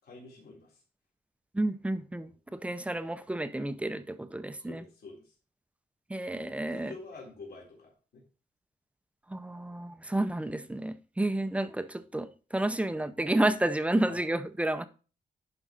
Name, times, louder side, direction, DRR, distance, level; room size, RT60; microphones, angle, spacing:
voice 1, 0.0-0.8 3.6-4.0 4.6-5.3 6.7-8.2 14.0-14.2, left 3 dB, 75° left, 3.7 m, -48 dB
voice 2, 1.5-4.8 6.1-6.9 9.3-14.9, right 1 dB, 10° right, 0.5 m, -31 dB
11.0 x 5.4 x 3.9 m
wide cardioid pair, 170°, 17 cm